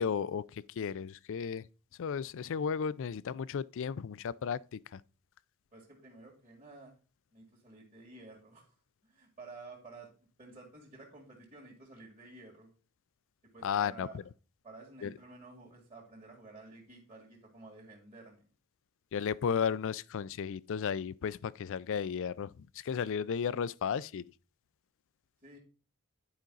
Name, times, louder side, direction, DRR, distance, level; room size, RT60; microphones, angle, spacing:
voice 1, 0.0-1.6 2.0-5.0 13.6-14.1 15.0-15.1 19.1-24.2, left 7 dB, 60° left, 0.4 m, -34 dB
voice 2, 5.7-7.0 7.3-8.7 9.0-10.1 10.4-12.7 13.5-14.2 14.6-18.5 22.8-22.9 25.4-25.6, right 3 dB, 30° right, 2.1 m, -52 dB
10.0 x 5.1 x 3.9 m
head